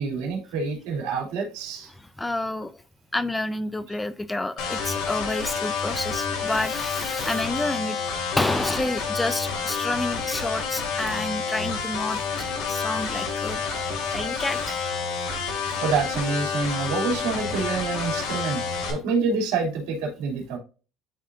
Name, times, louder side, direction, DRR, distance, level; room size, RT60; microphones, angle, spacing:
voice 1, 0.0-1.9 13.6-14.3 15.8-18.6 18.9-20.6, right 4 dB, 80° right, 2.9 m, -27 dB
voice 2, 2.2-2.8 3.1-8.0 8.4-13.6 14.1-15.4, left 1 dB, 10° left, 0.4 m, -29 dB
sound 1, 4.6-18.9, left 5 dB, 75° left, 2.6 m, -29 dB
11.0 x 3.7 x 2.6 m
cardioid pair, 130°, 0 cm